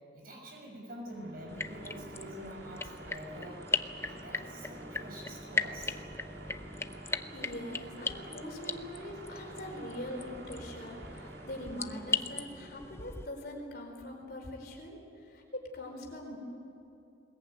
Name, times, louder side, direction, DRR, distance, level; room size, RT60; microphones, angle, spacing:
voice 1, 0.1-3.7 4.0-6.0, equal, 50° right, 1 dB, 6.4 m, -46 dB
sound 1, 1.0-12.5, right 1 dB, 80° right, 2.4 m, -49 dB
sound 2, 1.5-13.3, left 4 dB, 15° left, 0.6 m, -38 dB
voice 2, 7.0-16.4, left 1 dB, 55° left, 1 dB, 4.5 m, -43 dB
21.0 x 20.5 x 9.1 m, 2.9 s
head